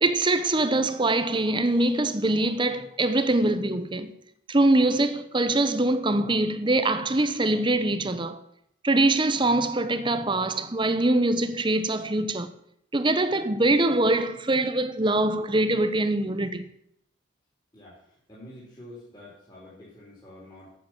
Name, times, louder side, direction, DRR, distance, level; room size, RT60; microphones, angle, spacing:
voice 1, 0.0-4.1 4.5-8.4 8.8-12.5 12.9-16.6, right 2 dB, 25° right, 0.8 m, -23 dB
voice 2, 18.3-20.7, left 1 dB, 20° left, 3.4 m, -47 dB
9.2 x 7.6 x 8.8 m
head